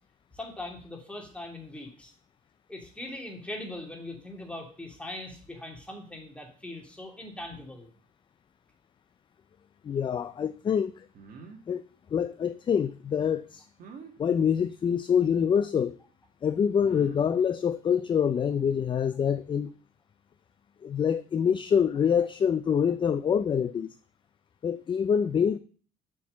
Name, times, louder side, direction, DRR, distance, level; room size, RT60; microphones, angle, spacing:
voice 1, 0.3-2.1 2.7-7.9, left 1 dB, 5° left, 2.4 m, -41 dB
voice 2, 9.8-11.0 11.7-11.8 12.1-13.6 14.2-16.0 16.4-19.7 20.8-23.9 24.6-25.6, left 7 dB, 30° left, 0.4 m, -25 dB
sound 1, 11.1-11.6 13.8-14.1 15.6-15.7 16.8-17.4, right 5 dB, 55° right, 1.6 m, -46 dB
7.2 x 4.7 x 6.9 m
cardioid pair, 110°, 17 cm